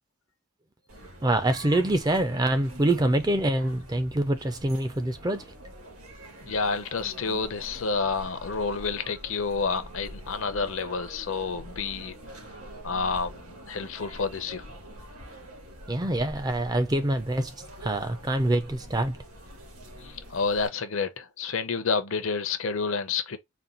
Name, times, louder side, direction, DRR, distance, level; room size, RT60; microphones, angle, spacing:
sound 1, 0.9-20.7, right 1 dB, 80° right, 1.6 m, -45 dB
voice 1, 1.2-5.4 15.9-19.2, right 1 dB, 15° right, 0.4 m, -25 dB
voice 2, 6.4-12.1 12.8-14.6 20.3-23.4, left 4 dB, 60° left, 0.6 m, -29 dB
4.2 x 2.2 x 3.8 m
head